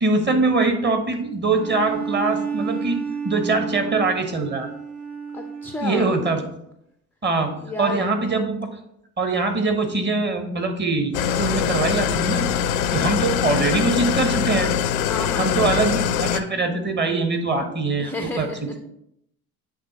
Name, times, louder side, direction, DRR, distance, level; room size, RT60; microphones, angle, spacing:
voice 1, 0.0-4.7 5.8-6.5 7.2-7.5 7.8-8.7 9.2-12.5 12.9-14.7 15.4-18.5, right 3 dB, 25° right, 6 dB, 1.0 m, -23 dB
Bowed string instrument, 1.5-6.3, right 6 dB, 80° right, 0.9 m, -31 dB
voice 2, 5.3-6.1 7.5-8.0 15.1-15.7 18.0-18.8, left 3 dB, 5° left, 3 dB, 0.4 m, -32 dB
Engine starting / Idling, 11.1-16.4, left 8 dB, 75° left, 0.6 m, -23 dB
8.0 x 3.2 x 3.9 m, 0.77 s
figure-of-eight pair, 65°, 43 cm